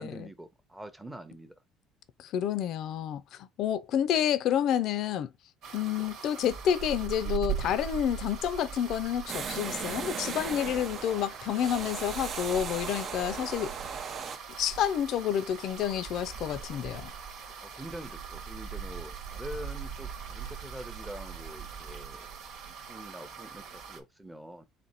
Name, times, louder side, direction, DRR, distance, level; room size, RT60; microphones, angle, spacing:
voice 1, 0.0-1.5 5.8-6.0 13.2-13.8 17.6-22.3 22.6-24.6, right 1 dB, 5° right, 0.8 m, -45 dB
voice 2, 2.2-5.3 5.7-13.7 14.6-17.1, left 9 dB, 60° left, 0.5 m, -29 dB
sound 1, 5.6-24.0, right 7 dB, 70° right, 1.3 m, -41 dB
sound 2, 9.3-14.4, right 6 dB, 40° right, 0.7 m, -37 dB
4.2 x 2.8 x 4.1 m
cardioid pair, 130°, 0 cm